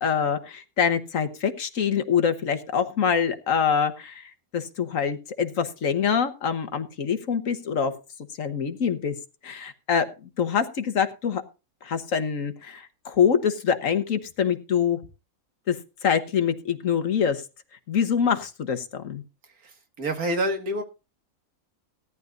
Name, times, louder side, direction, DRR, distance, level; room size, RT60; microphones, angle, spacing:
voice 1, 0.0-7.9 8.4-9.1 9.4-10.1 10.4-11.4 11.8-15.0 15.7-15.8 16.0-17.4 17.9-19.2, left 7 dB, 65° left, 9 dB, 1.5 m, -25 dB
voice 2, 19.6-20.8, right 1 dB, 90° right, 5 dB, 2.3 m, -27 dB
17.5 x 11.0 x 2.6 m, 0.30 s
omnidirectional pair, 1.5 m